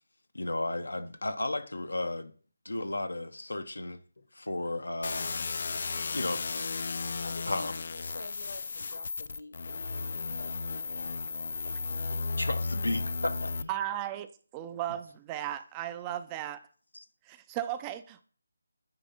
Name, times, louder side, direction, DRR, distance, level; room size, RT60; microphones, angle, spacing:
voice 1, 0.3-2.3 2.6-4.0 4.3-5.5 6.1-6.8 7.5-7.7 12.4-13.7 16.9-17.1, left 2 dB, 90° left, 0.9 m, -34 dB
sound 1, 5.0-13.6, left 4 dB, 55° left, 0.4 m, -34 dB
voice 2, 5.7-6.2 7.0-12.4, left 2 dB, 70° left, 1.4 m, -50 dB
voice 3, 13.7-14.3 14.5-16.6 17.3-18.2, right 12 dB, 15° right, 0.4 m, -35 dB
9.5 x 3.6 x 5.6 m
figure-of-eight pair, 160°, 0 cm